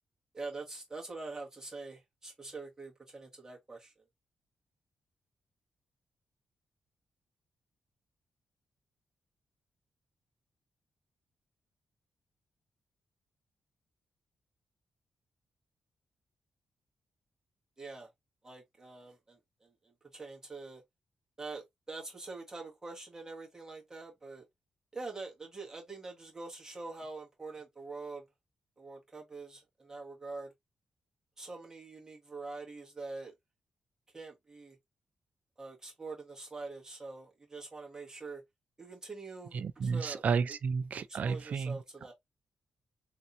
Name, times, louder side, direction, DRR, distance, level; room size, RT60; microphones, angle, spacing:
voice 1, 0.3-3.9 17.8-18.1 18.4-20.8 21.4-24.4 24.9-28.3 28.8-30.5 31.4-33.3 34.1-34.8 35.6-38.4 38.8-40.6 41.0-42.1, right 3 dB, 20° right, 1.6 m, -45 dB
voice 2, 39.5-41.8, right 5 dB, 60° right, 0.4 m, -32 dB
3.4 x 2.9 x 2.7 m
cardioid pair, 95°, 3 cm